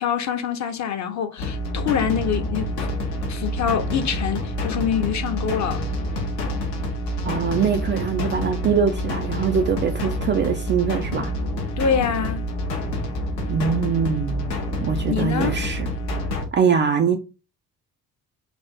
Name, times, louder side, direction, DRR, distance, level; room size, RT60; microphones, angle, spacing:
voice 1, 0.0-2.9 3.3-5.8 11.8-12.5 15.1-15.6, left 7 dB, 35° left, 0.8 m, -25 dB
sound 1, 1.4-16.5, left 1 dB, 85° left, 0.8 m, -27 dB
voice 2, 7.2-11.3 13.5-15.9 16.5-17.2, right 6 dB, 25° right, 0.4 m, -23 dB
3.5 x 2.5 x 4.1 m
figure-of-eight pair, 45°, 48 cm